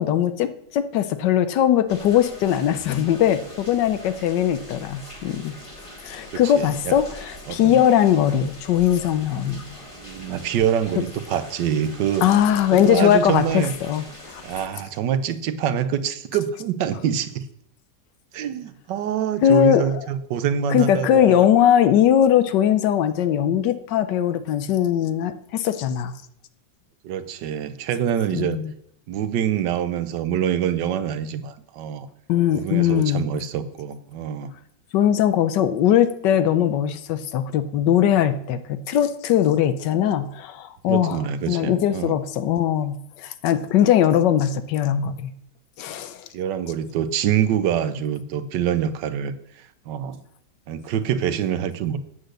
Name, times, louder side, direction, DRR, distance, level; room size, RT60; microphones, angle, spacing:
voice 1, 0.0-5.6 6.0-9.6 12.2-14.0 14.3-14.4 19.4-20.1 20.7-26.1 28.3-28.7 32.3-33.3 34.9-41.2 41.5-45.3 45.8-46.2, left 10 dB, 85° left, 12 dB, 1.4 m, -20 dB
sound 1, 1.9-14.7, left 1 dB, 20° left, 1.7 m, -42 dB
voice 2, 6.3-6.9 7.5-7.8 10.0-12.3 12.8-13.7 14.4-17.4 18.3-21.5 27.0-28.6 29.1-32.1 32.5-34.5 40.9-42.1 46.3-50.2 50.7-52.0, right 9 dB, 90° right, 12 dB, 1.4 m, -25 dB
8.1 x 7.8 x 6.5 m, 0.73 s
omnidirectional pair, 1.8 m